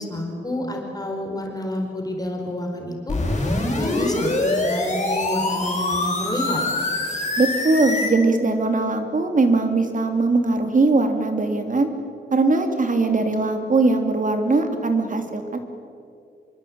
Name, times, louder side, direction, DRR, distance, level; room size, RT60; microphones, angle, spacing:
voice 1, 0.0-3.2 3.6-6.6, left 1 dB, 20° left, 1 dB, 4.8 m, -29 dB
sound 1, 3.1-8.1, left 2 dB, 40° left, 6.0 m, -24 dB
voice 2, 7.4-11.9 12.3-15.6, right 3 dB, 45° right, 6 dB, 2.9 m, -20 dB
26.0 x 24.0 x 8.8 m, 2.5 s
wide cardioid pair, 130°, 18 cm